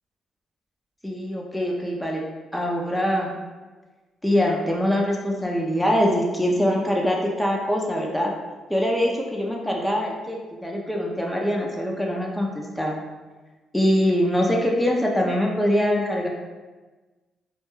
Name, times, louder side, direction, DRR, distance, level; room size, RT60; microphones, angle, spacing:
voice 1, 1.0-2.2 2.5-3.3 4.2-8.3 8.7-13.0 13.7-16.3, equal, 5° left, -1 dB, 0.4 m, -23 dB
2.2 x 2.2 x 3.0 m, 1.2 s
cardioid pair, 90°, 0 cm